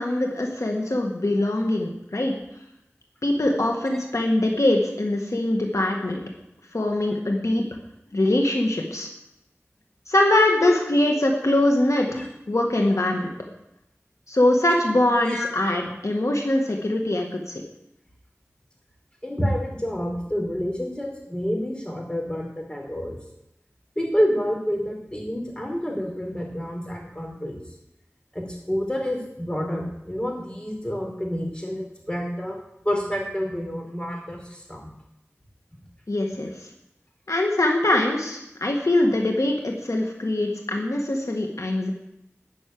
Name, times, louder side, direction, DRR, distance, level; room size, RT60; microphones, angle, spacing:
voice 1, 0.0-2.3 3.2-6.2 6.7-7.6 8.1-9.1 10.1-12.2 12.5-13.3 14.3-17.5 36.1-36.5 37.3-41.9, left 1 dB, 80° left, 1 dB, 1.8 m, -22 dB
voice 2, 19.2-23.2 24.0-27.6 28.3-32.6 32.8-34.9, equal, 20° left, 1 dB, 4.5 m, -28 dB
13.0 x 6.5 x 9.4 m, 0.83 s
wide cardioid pair, 45°, 5 cm